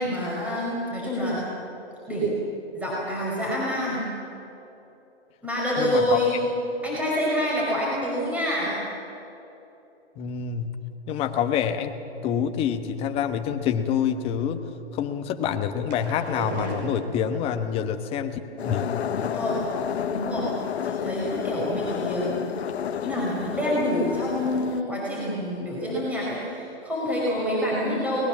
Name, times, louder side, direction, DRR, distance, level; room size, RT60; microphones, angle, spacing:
voice 1, 0.0-1.5 2.1-2.3 2.7-4.1 5.4-6.4 6.8-8.8 19.3-19.6 20.1-20.5 20.8-22.4 23.0-28.3, equal, 5° right, -6 dB, 4.9 m, -27 dB
voice 2, 5.8-6.2 10.2-11.9 12.2-14.6 14.9-18.9, left 8 dB, 20° left, 7 dB, 1.1 m, -27 dB
sound 1, 15.5-17.6 18.6-19.6 20.0-20.4 20.7-20.8 21.1-21.2, right 2 dB, 40° right, 5.8 m, -37 dB
sound 2, 18.6-24.8, left 9 dB, 75° left, 0.9 m, -31 dB
23.0 x 20.0 x 7.4 m, 2.9 s
hypercardioid pair, 150°, 33 cm